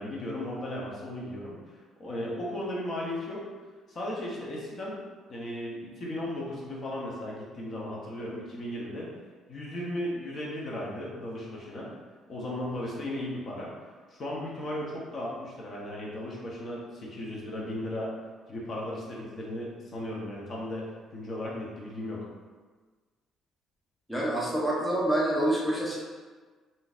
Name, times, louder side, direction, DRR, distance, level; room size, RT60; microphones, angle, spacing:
voice 1, 0.0-1.6 2.0-3.4 3.9-5.0 5.3-9.1 9.5-11.9 12.3-13.7 14.1-18.1 18.5-20.8 21.1-22.3, left 1 dB, 40° left, -4 dB, 0.8 m, -36 dB
voice 2, 24.1-26.0, right 1 dB, ahead, -6 dB, 0.6 m, -27 dB
3.7 x 2.7 x 2.4 m, 1.4 s
cardioid pair, 120°, 0 cm